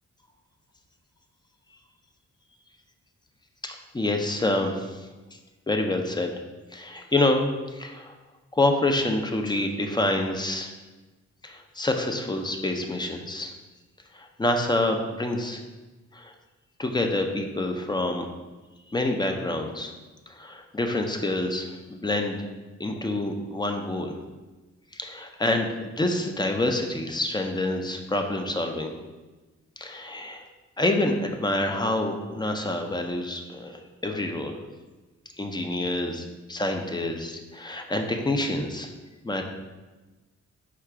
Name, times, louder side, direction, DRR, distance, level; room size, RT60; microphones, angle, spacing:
voice 1, 3.6-5.1 5.7-6.3 6.7-7.4 7.7-8.1 8.5-10.7 11.4-13.5 14.1-15.6 16.1-16.3 16.8-18.3 18.9-19.9 20.3-22.5 22.8-24.2 24.9-28.9 29.8-30.4 30.8-34.6 35.4-38.9 39.2-39.4, left 2 dB, 15° left, 4 dB, 0.4 m, -27 dB
4.8 x 2.3 x 4.5 m, 1.2 s
wide cardioid pair, 115°, 29 cm